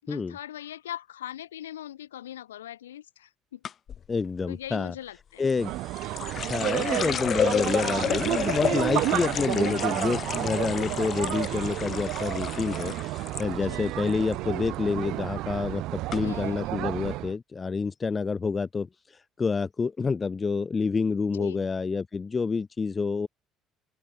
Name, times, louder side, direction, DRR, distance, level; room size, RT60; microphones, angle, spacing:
voice 1, 0.0-3.6 4.5-5.5 13.6-13.9 14.4-14.5 16.2-16.9 21.3-21.7, left 12 dB, 80° left, 5.8 m, -41 dB
sound 1, 3.6-4.0 5.5-13.5 13.7-14.3 14.7-15.0 15.7-15.8 16.1-16.2, left 8 dB, 45° left, 5.4 m, -32 dB
voice 2, 4.1-4.9 5.4-5.7 6.5-13.1 13.4-18.9 19.4-23.3, left 4 dB, 30° left, 1.9 m, -28 dB
sound 2, 5.6-17.3, right 18 dB, 60° right, 5.3 m, -31 dB
figure-of-eight pair, 55°, 0 cm